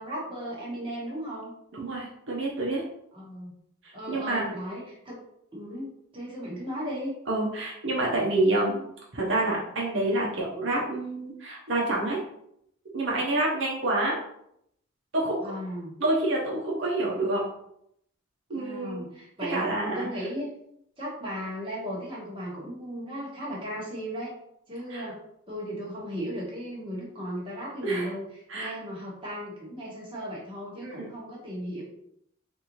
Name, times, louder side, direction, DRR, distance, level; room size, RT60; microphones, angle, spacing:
voice 1, 0.0-1.5 3.1-3.5 3.9-5.2 5.5-7.1 15.4-15.9 18.5-20.5 21.0-24.3 24.7-25.2 25.5-31.8, equal, 25° right, -5 dB, 1.2 m, -36 dB
voice 2, 1.7-2.8 3.8-4.4 7.3-8.9 9.1-12.2 12.9-14.2 15.1-15.5 16.0-17.4 18.5-19.1 19.5-20.1 24.9-25.1 27.8-28.1 28.5-28.7 30.8-31.1, right 2 dB, 70° right, -3 dB, 0.8 m, -27 dB
4.0 x 2.6 x 3.0 m, 0.74 s
head